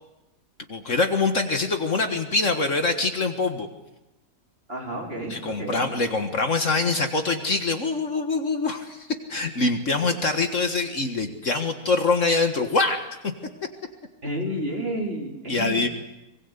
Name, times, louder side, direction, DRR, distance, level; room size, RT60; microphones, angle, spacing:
voice 1, 0.7-3.7 5.3-13.0 15.5-15.9, left 3 dB, 50° left, 6 dB, 1.9 m, -24 dB
voice 2, 4.7-5.8 14.2-15.9, right 1 dB, 35° right, 0 dB, 4.4 m, -31 dB
24.0 x 21.5 x 8.2 m, 0.97 s
omnidirectional pair, 1.7 m